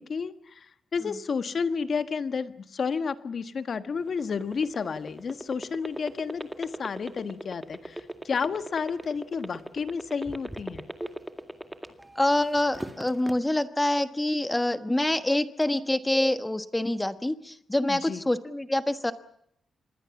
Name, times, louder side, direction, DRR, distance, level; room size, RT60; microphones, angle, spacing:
voice 1, 0.0-10.8 17.9-18.2, left 5 dB, 45° left, 11 dB, 1.4 m, -31 dB
sound 1, 4.0-12.2 12.6-13.3, right 1 dB, 5° right, 2.1 m, -36 dB
voice 2, 12.1-19.1, left 1 dB, 10° left, 11 dB, 1.3 m, -26 dB
26.0 x 21.5 x 7.2 m, 0.70 s
wide cardioid pair, 145°, 0 cm